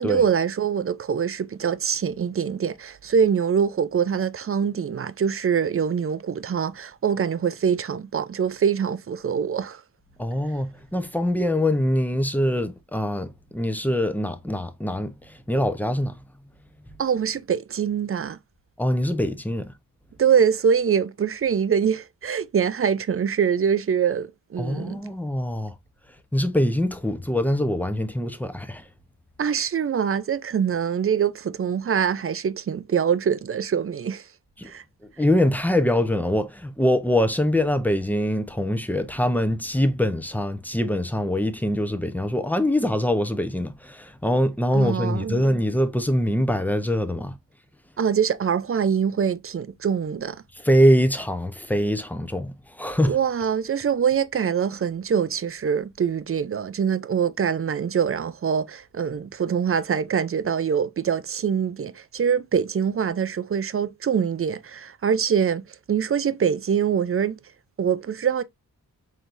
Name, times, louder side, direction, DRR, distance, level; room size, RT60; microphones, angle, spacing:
voice 1, 0.0-9.8 17.0-18.4 20.2-25.0 29.4-34.3 34.6-34.8 44.7-45.4 48.0-50.4 53.0-65.6 65.9-67.4 67.8-68.4, right 7 dB, 35° right, 0.5 m, -24 dB
voice 2, 10.2-16.2 18.8-19.7 24.6-25.7 26.3-28.9 34.6-34.7 35.2-47.4 50.6-53.2, equal, 5° left, 0.7 m, -23 dB
4.5 x 3.4 x 2.5 m
cardioid pair, 65°, 37 cm